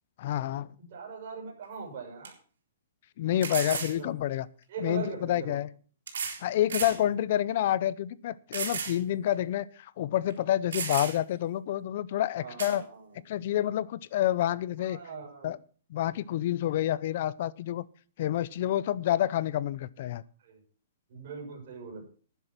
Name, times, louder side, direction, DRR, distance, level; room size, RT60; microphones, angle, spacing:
voice 1, 0.2-0.7 3.2-4.5 4.8-5.7 6.4-12.8 13.3-15.0 15.4-15.6 15.9-17.9 18.2-20.2, left 12 dB, 40° left, 20 dB, 0.6 m, -28 dB
voice 2, 0.9-2.3 3.5-4.1 4.7-5.6 6.9-7.1 12.4-13.2 14.8-15.5 20.4-20.6 21.1-22.0, right 5 dB, 40° right, -3 dB, 6.5 m, -41 dB
sound 1, 1.6-1.7 2.2-2.3 3.4-4.0 5.1-5.2 6.1-6.4 6.7-7.0 7.5-7.6 8.5-9.0 9.3-9.4 10.3-10.4 10.7-11.3 12.6-12.8, right 6 dB, 80° right, 4.7 m, -34 dB
12.0 x 9.9 x 6.0 m, 0.42 s
hypercardioid pair, 175°, 0 cm